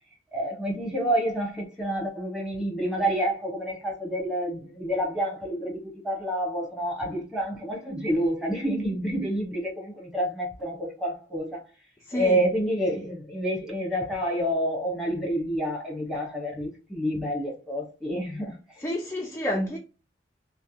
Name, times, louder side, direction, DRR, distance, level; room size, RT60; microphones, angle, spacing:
voice 1, 0.3-11.6 12.1-18.5, equal, ahead, 1.0 m, -28 dB
voice 2, 12.1-12.4 18.8-19.8, left 1 dB, 15° left, 0.4 m, -29 dB
3.3 x 2.1 x 2.7 m
head